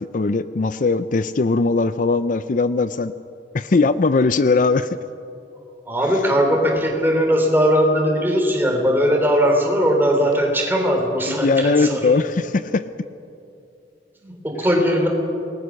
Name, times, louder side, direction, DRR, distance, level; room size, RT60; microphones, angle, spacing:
voice 1, 0.0-3.1 3.5-5.0 11.3-12.8, left 3 dB, 50° left, 13 dB, 0.5 m, -19 dB
voice 2, 5.9-12.2 14.2-15.1, equal, 10° right, 1 dB, 4.0 m, -19 dB
27.5 x 20.0 x 6.5 m, 2.7 s
head